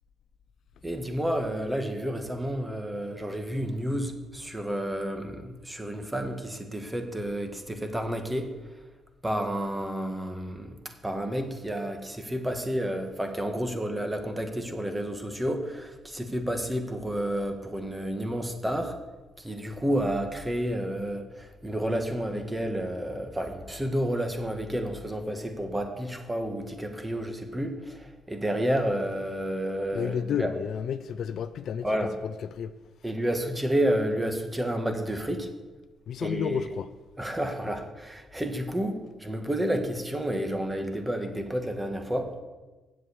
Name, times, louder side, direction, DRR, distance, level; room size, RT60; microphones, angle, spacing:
voice 1, 0.8-8.5 9.2-10.7 11.0-19.0 19.4-30.5 31.8-32.1 33.0-35.5 36.2-36.7 37.2-42.3, equal, 10° right, 1.5 m, -30 dB
voice 2, 29.9-31.9 32.2-32.7 36.1-36.9, left 8 dB, 65° left, 0.5 m, -31 dB
7.7 x 7.7 x 8.3 m
cardioid pair, 90°, 0 cm